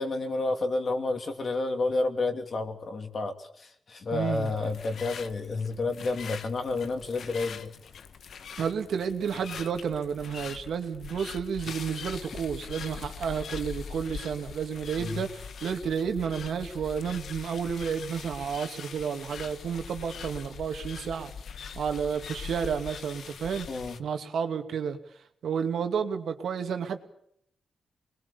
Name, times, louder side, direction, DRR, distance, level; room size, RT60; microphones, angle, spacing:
voice 1, 0.0-7.7 15.0-15.2 23.7-24.0, left 3 dB, 40° left, 6 dB, 3.0 m, -30 dB
voice 2, 4.1-4.5 8.6-21.3 21.8-23.7 24.0-25.0 25.4-27.0, right 7 dB, 80° right, 6 dB, 2.5 m, -31 dB
sound 1, 4.3-24.0, left 6 dB, 70° left, 1.4 m, -42 dB
27.5 x 21.5 x 7.1 m, 0.70 s
wide cardioid pair, 150°, 0 cm